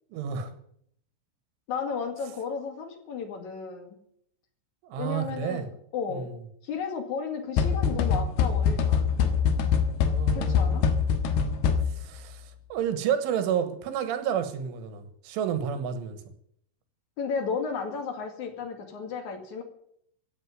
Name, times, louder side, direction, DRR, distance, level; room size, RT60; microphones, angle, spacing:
voice 1, 0.1-0.5 4.8-5.7 6.1-6.4 10.0-11.0 12.0-12.5 12.7-16.2, right 8 dB, 75° right, 9 dB, 3.7 m, -30 dB
voice 2, 1.7-4.0 5.0-6.3 6.6-9.1 10.3-10.8 17.2-19.6, left 6 dB, 50° left, 5 dB, 2.7 m, -33 dB
sound 1, 7.6-12.2, left 6 dB, 65° left, 2.7 m, -24 dB
15.5 x 8.9 x 9.4 m, 0.69 s
omnidirectional pair, 5.9 m